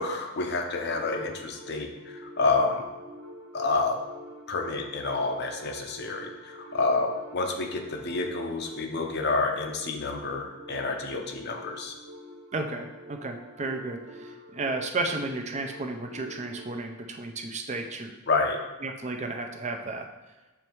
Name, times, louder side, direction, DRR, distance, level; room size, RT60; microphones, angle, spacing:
voice 1, 0.0-2.8 3.5-4.0 4.5-11.9 18.3-18.6, left 3 dB, 55° left, 3 dB, 0.7 m, -29 dB
sound 1, 0.8-16.8, equal, 80° right, 0.8 m, -46 dB
voice 2, 12.5-18.1 18.8-20.1, right 2 dB, 35° right, 4 dB, 0.5 m, -33 dB
7.0 x 3.2 x 4.5 m, 1.2 s
head